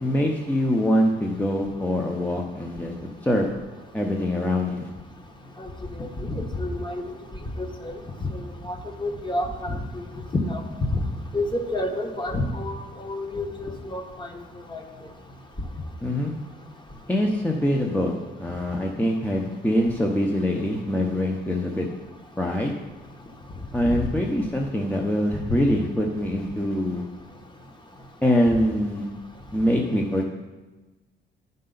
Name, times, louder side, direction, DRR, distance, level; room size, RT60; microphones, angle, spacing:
voice 1, 0.0-2.9 3.2-3.5 3.9-4.9 16.0-16.3 17.1-18.1 18.4-21.9 22.4-22.7 23.7-27.0 28.2-29.1 29.5-30.2, left 1 dB, 10° left, 0 dB, 0.8 m, -24 dB
voice 2, 6.0-7.0 7.6-7.9 8.2-8.3 8.6-10.0 10.4-11.0 11.3-14.3 14.7-14.8, left 1 dB, 25° left, 4 dB, 1.2 m, -29 dB
11.0 x 5.4 x 3.9 m, 1.2 s
cardioid pair, 90°, 20 cm